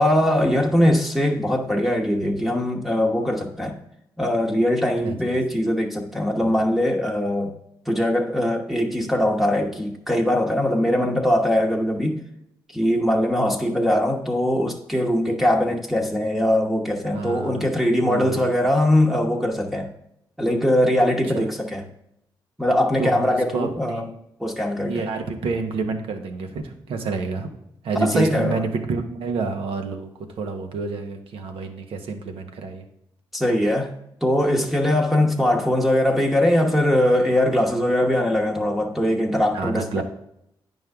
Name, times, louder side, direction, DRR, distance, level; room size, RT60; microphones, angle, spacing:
voice 1, 0.0-3.8 4.2-7.5 7.9-12.2 12.7-19.9 20.4-21.8 22.6-24.0 24.4-25.0 27.9-28.6 33.3-33.9 34.2-40.0, left 1 dB, ahead, 1.0 m, -21 dB
voice 2, 5.0-5.4 17.1-17.7 18.0-18.5 21.3-21.5 23.0-24.1 24.8-27.5 27.8-32.9 39.5-40.0, right 4 dB, 80° right, 1.0 m, -29 dB
9.2 x 5.4 x 3.5 m
cardioid pair, 65°, 9 cm